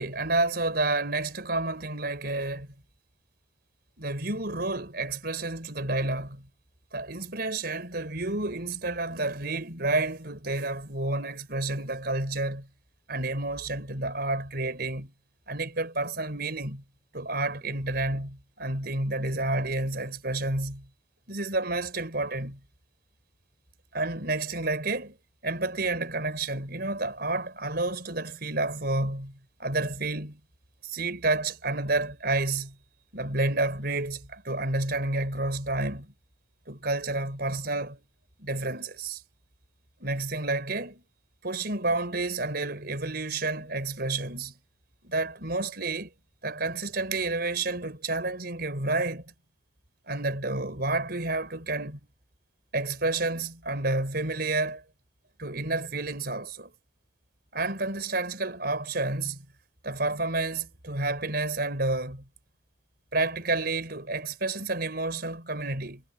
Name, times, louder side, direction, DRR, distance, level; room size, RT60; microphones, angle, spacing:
voice 1, 0.0-2.7 4.0-6.4 6.9-12.7 13.1-15.1 15.5-16.8 17.1-20.9 21.3-22.6 23.9-25.2 25.4-30.4 30.8-32.7 33.1-36.1 36.7-38.0 38.4-39.2 40.0-41.0 41.4-44.5 45.0-46.1 46.4-49.2 50.1-52.0 52.7-54.8 55.4-56.7 57.5-59.4 59.8-62.2 63.1-66.0, right 2 dB, 55° right, 4.8 m, -30 dB
head